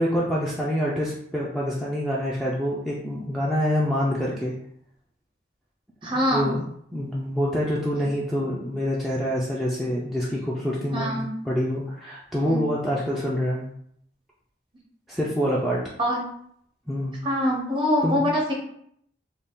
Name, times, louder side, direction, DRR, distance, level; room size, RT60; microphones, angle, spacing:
voice 1, 0.0-4.5 6.0-6.6 6.9-13.7 15.1-15.8 16.9-17.2 18.0-18.2, equal, ahead, -6 dB, 0.3 m, -26 dB
voice 2, 6.0-6.4 10.9-11.3 12.5-12.6 16.0-16.2 17.2-18.5, equal, 30° right, -2 dB, 0.7 m, -24 dB
2.5 x 2.3 x 3.5 m, 0.69 s
head